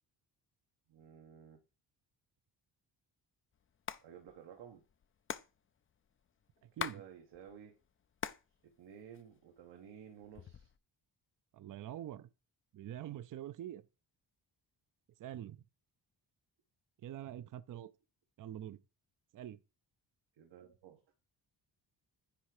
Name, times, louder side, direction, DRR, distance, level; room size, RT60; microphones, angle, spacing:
voice 1, 0.9-1.6 4.0-4.8 6.7-7.7 8.6-10.7 20.3-21.0, right 8 dB, 85° right, 1.3 m, -54 dB
Hands, 3.7-4.0 4.3-4.4 4.6-7.0 7.3-8.5 8.8-9.6 10.2-10.8, left 8 dB, 30° left, 0.4 m, -42 dB
voice 2, 6.6-7.0 11.5-12.3 12.7-13.9 15.2-15.6 17.0-17.9 18.4-18.8 19.3-19.6, right 11 dB, 50° right, 0.5 m, -45 dB
10.0 x 3.4 x 4.8 m
wide cardioid pair, 145°, 43 cm